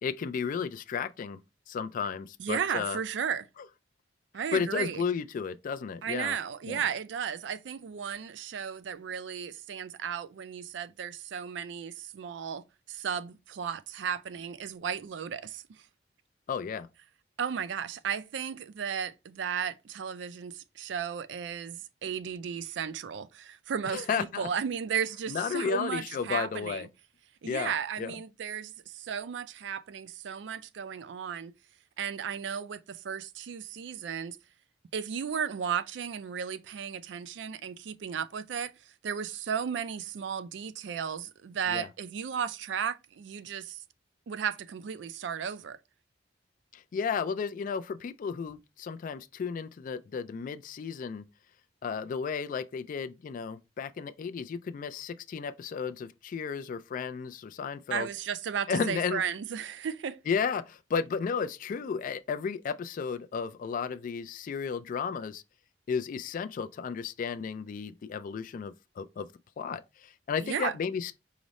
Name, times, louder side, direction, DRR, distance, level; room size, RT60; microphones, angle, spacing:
voice 1, 0.0-1.4 1.7-3.0 4.5-6.4 6.7-6.8 16.5-16.9 23.9-24.5 25.3-26.9 27.4-27.7 28.0-28.1 41.7-41.9 46.7-51.2 51.8-58.1 58.7-59.2 60.3-65.4 65.9-69.3 69.6-71.1, left 6 dB, 45° left, 0.3 m, -33 dB
voice 2, 2.4-3.5 4.3-5.0 6.0-15.8 17.4-26.9 27.4-31.5 32.0-34.4 34.9-43.8 44.3-45.8 57.9-60.2 70.4-70.8, right 7 dB, 70° right, 0.4 m, -34 dB
4.8 x 2.0 x 3.9 m
head